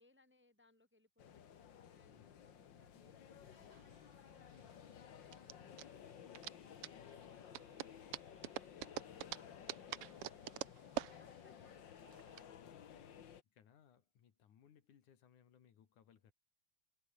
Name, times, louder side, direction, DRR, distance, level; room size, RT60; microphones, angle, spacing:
voice 1, 0.0-6.3 6.5-12.8, left 2 dB, 5° right, 2.5 m, -72 dB
sound 1, 1.2-13.4, left 9 dB, 50° left, 1.5 m, -56 dB
sound 2, 3.5-12.4, right 14 dB, 85° right, 1.3 m, -47 dB
voice 2, 12.7-16.3, left 8 dB, 70° left, 3.5 m, -67 dB
omnidirectional pair, 3.7 m